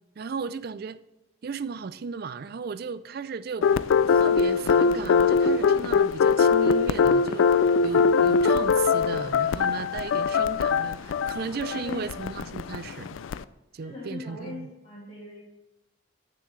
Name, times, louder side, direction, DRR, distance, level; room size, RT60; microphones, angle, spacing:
voice 1, 0.2-1.0 1.4-3.7 4.1-13.2 13.7-14.7, right 5 dB, 50° right, 14 dB, 0.4 m, -35 dB
sound 1, 3.6-13.4, left 5 dB, 80° left, 0.3 m, -22 dB
voice 2, 11.6-12.1 13.8-15.4, left 2 dB, 35° left, -8 dB, 2.5 m, -39 dB
15.5 x 6.9 x 3.2 m, 0.92 s
head